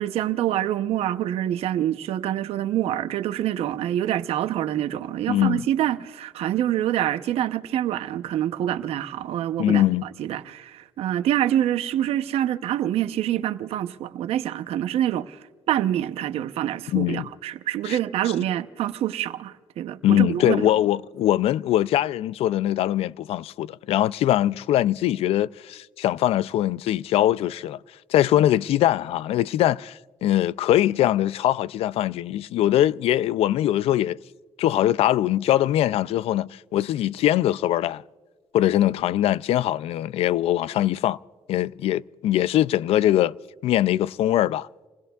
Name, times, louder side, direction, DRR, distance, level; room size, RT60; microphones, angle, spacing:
voice 1, 0.0-9.8 10.2-15.4 15.7-20.7, right 12 dB, 75° right, 0.8 m, -26 dB
voice 2, 5.3-5.6 9.6-10.0 16.9-17.3 17.9-18.0 20.0-27.8 28.1-34.2 34.6-38.0 38.5-41.2 41.5-43.3 43.6-44.7, left 13 dB, 75° left, 0.4 m, -22 dB
29.0 x 20.5 x 2.4 m
cardioid pair, 105°, 10 cm